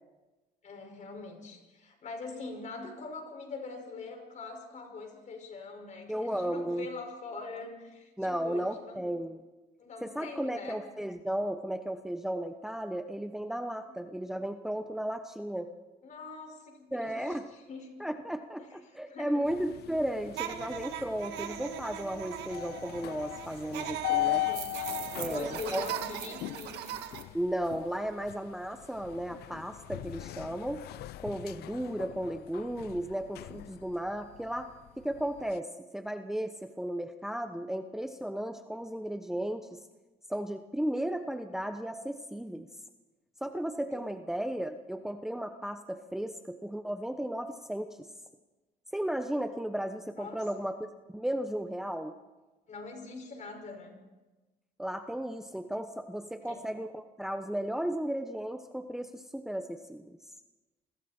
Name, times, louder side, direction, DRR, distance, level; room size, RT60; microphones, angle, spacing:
voice 1, 0.6-9.0 9.8-10.8 13.9-14.0 16.0-17.9 18.6-19.6 24.0-27.0 43.9-44.1 50.2-50.7 52.7-54.0 56.4-56.6, left 4 dB, 45° left, 3 dB, 5.7 m, -43 dB
voice 2, 6.1-6.9 8.2-9.4 10.0-15.7 16.9-17.5 18.0-24.4 25.2-25.9 27.3-30.8 31.2-34.7 35.0-39.8 40.3-42.7 43.4-48.1 48.9-50.8 51.1-52.1 54.8-60.2, right 1 dB, 5° right, 7 dB, 1.0 m, -35 dB
sound 1, 19.4-35.6, left 18 dB, 70° left, 0.6 m, -39 dB
sound 2, 20.3-27.2, right 10 dB, 85° right, 2.0 m, -39 dB
28.0 x 21.5 x 4.4 m, 1.1 s
cardioid pair, 110°, 17 cm